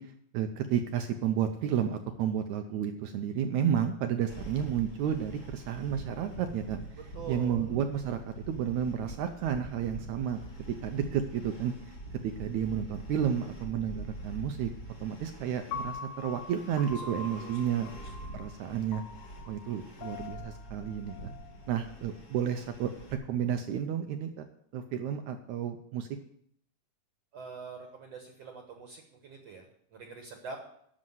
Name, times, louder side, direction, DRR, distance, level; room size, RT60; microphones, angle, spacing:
voice 1, 0.0-6.8 7.3-10.4 10.7-12.0 12.2-14.7 15.0-17.9 18.3-19.0 19.5-21.3 21.7-22.9 23.3-24.5 24.7-26.1, right 9 dB, 75° right, 7 dB, 1.8 m, -31 dB
sound 1, 4.3-23.1, right 1 dB, 35° left, 1.3 m, -45 dB
voice 2, 7.1-7.7 17.2-17.5 17.9-18.0 27.3-30.6, right 5 dB, 55° right, 2 dB, 2.1 m, -45 dB
Piano, 15.7-21.9, left 5 dB, 70° left, 2.1 m, -44 dB
11.5 x 6.5 x 7.8 m, 0.69 s
omnidirectional pair, 3.9 m